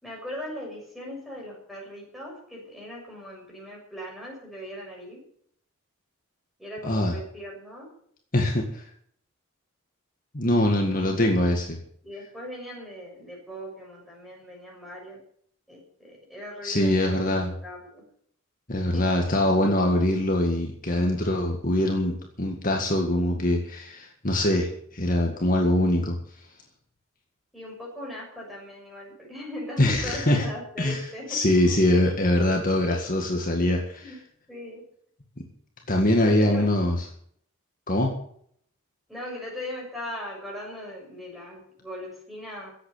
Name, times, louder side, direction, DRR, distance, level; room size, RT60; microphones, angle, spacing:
voice 1, 0.0-5.2 6.6-7.9 12.0-15.2 15.7-17.2 17.6-18.0 18.9-19.0 27.5-32.0 34.0-34.2 34.5-34.8 36.2-36.7 39.1-42.7, equal, ahead, -2 dB, 6.7 m, -39 dB
voice 2, 6.8-7.2 8.3-8.8 10.3-11.8 16.6-17.5 18.7-26.2 29.8-30.5 30.8-34.1 35.9-37.1 37.9-38.1, left 1 dB, 40° left, 1 dB, 1.9 m, -23 dB
16.0 x 8.4 x 8.5 m, 0.65 s
head